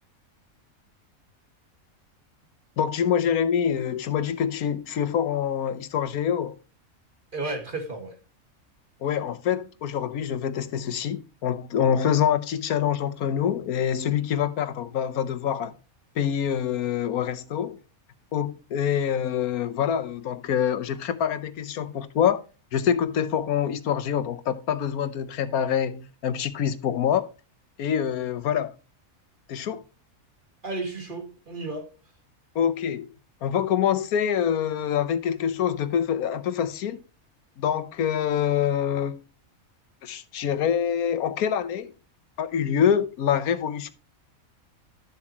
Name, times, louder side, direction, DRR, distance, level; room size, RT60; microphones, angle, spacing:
voice 1, 2.8-6.6 9.0-15.7 16.2-17.8 18.3-22.4 22.7-27.2 27.8-28.7 29.5-29.8 32.5-33.1 33.4-37.0 37.6-39.2 40.0-41.9 42.4-43.9, left 8 dB, 90° left, 1.3 m, -25 dB
voice 2, 7.3-8.2 30.6-31.9, right 2 dB, 35° right, 2.0 m, -33 dB
12.5 x 7.3 x 2.9 m
omnidirectional pair, 1.5 m